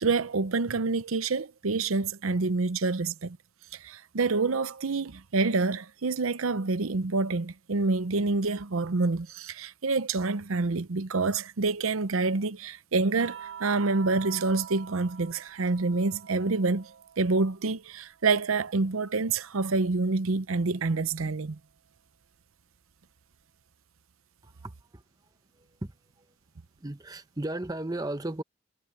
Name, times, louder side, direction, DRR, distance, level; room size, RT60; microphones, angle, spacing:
voice 1, 0.0-3.4 3.8-16.9 17.2-21.6, right 3 dB, 80° right, 0.7 m, -27 dB
sound 1, 13.2-17.7 18.0-19.7 21.2-21.4, right 8 dB, 60° right, 1.5 m, -46 dB
voice 2, 24.4-25.0 25.5-26.3 26.8-28.4, right 1 dB, 20° right, 0.8 m, -36 dB
head